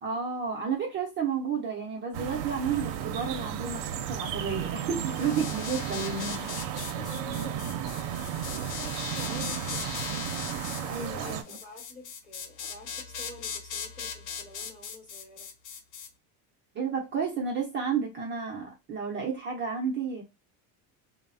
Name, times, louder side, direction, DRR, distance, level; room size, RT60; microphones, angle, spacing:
voice 1, 0.0-6.5 10.9-11.6 16.7-20.2, right 6 dB, 30° right, 0.5 m, -31 dB
sound 1, 2.1-11.4, right 10 dB, 80° right, 0.6 m, -34 dB
sound 2, 5.1-16.1, left 7 dB, 50° left, 0.6 m, -39 dB
voice 2, 6.9-7.6 8.0-8.3 8.8-9.9 10.8-15.5, left 2 dB, 20° left, 0.9 m, -48 dB
3.1 x 2.0 x 2.4 m
cardioid pair, 160°, 40 cm